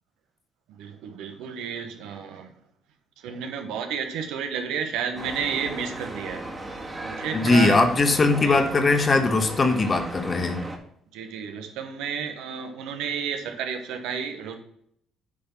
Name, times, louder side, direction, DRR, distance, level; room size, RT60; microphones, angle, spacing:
voice 1, 0.7-2.5 3.2-6.5 7.0-7.8 8.5-8.7 11.1-14.6, right 7 dB, 80° right, 6 dB, 1.0 m, -31 dB
sound 1, 5.1-10.8, right 2 dB, 25° right, 1.8 m, -36 dB
voice 2, 7.3-10.6, left 3 dB, 35° left, 7 dB, 1.1 m, -20 dB
8.6 x 3.6 x 5.6 m, 0.68 s
supercardioid pair, 70°, 0 cm